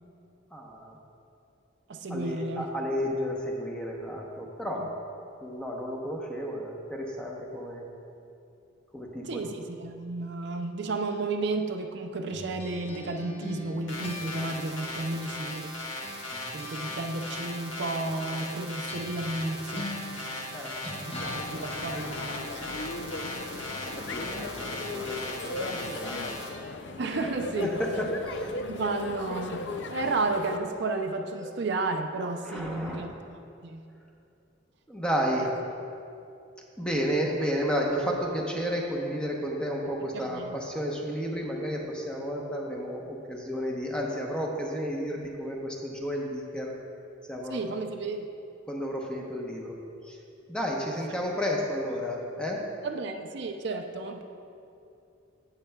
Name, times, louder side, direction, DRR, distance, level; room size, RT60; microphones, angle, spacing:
voice 1, 0.5-1.0 2.1-4.9 5.4-7.8 8.9-9.5 20.5-20.8 23.8-26.2 27.6-28.7 31.4-31.5 32.4-33.1 34.9-35.5 36.8-46.7 47.3-47.7 48.7-49.8 50.0-50.2 50.5-52.7, equal, 5° left, -1 dB, 0.9 m, -32 dB
voice 2, 1.9-2.7 4.7-4.9 9.2-15.7 16.5-19.9 21.2-22.8 27.0-27.8 28.7-33.8 40.1-40.6 47.5-48.3 52.8-54.2, right 3 dB, 60° right, 5 dB, 0.5 m, -32 dB
sound 1, 12.3-15.8 16.0-22.4, left 1 dB, 30° left, 1.0 m, -42 dB
sound 2, 13.9-26.5, left 1 dB, 80° left, 1.7 m, -38 dB
sound 3, 21.2-30.6, left 3 dB, 65° left, 0.5 m, -37 dB
17.0 x 6.7 x 2.3 m, 2.6 s
head